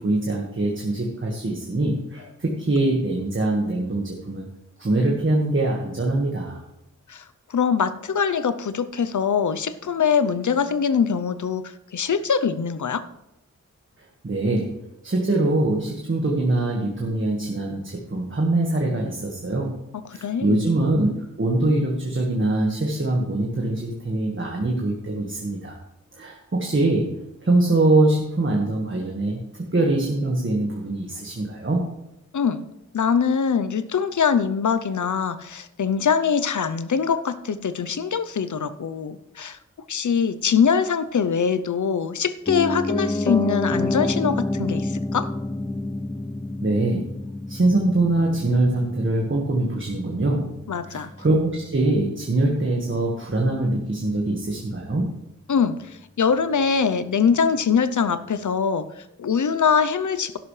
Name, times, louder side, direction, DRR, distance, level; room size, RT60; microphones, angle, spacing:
voice 1, 0.0-4.5 4.8-6.6 14.0-14.7 15.0-19.8 20.1-21.1 21.4-25.8 26.1-27.1 27.4-31.8 46.6-47.1 47.5-50.5 50.9-55.1, right 2 dB, 40° right, -1 dB, 1.6 m, -23 dB
voice 2, 7.5-13.0 19.9-20.6 32.3-32.7 32.9-39.6 39.9-45.3 50.7-51.1 55.5-60.4, left 6 dB, 75° left, 13 dB, 0.7 m, -23 dB
Piano, 42.5-52.5 52.8-52.9, left 2 dB, 15° left, 0.3 m, -29 dB
12.0 x 11.0 x 3.3 m, 0.90 s
wide cardioid pair, 80°, 30 cm